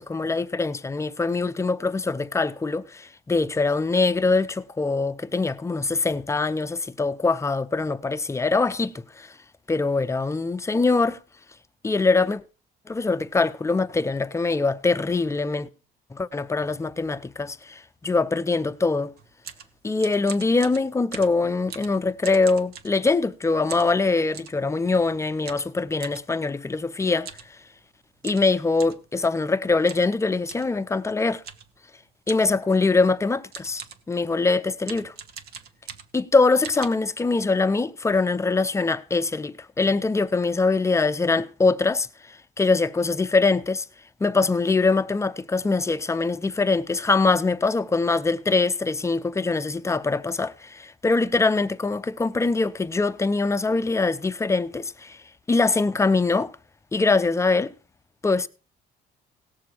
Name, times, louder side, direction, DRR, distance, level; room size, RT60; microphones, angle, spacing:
voice 1, 0.0-9.3 9.7-11.2 11.8-12.4 12.9-15.7 16.1-19.1 19.8-27.3 28.2-31.4 32.3-35.1 36.1-42.1 42.6-43.8 44.2-55.2 55.5-56.5 56.9-57.7 58.2-58.5, left 3 dB, 15° left, 0.6 m, -23 dB
sound 1, 19.2-23.3 23.7-24.6 25.5-26.3 27.2-27.5 27.8-27.9 28.2-29.1 29.9-30.1 30.5-30.7 31.4-31.8 32.3-32.6 33.2-33.3 33.5-34.1 34.8-36.3 36.6-36.9, right 7 dB, 65° right, 1.3 m, -41 dB
18.0 x 6.8 x 4.5 m
cardioid pair, 110°, 17 cm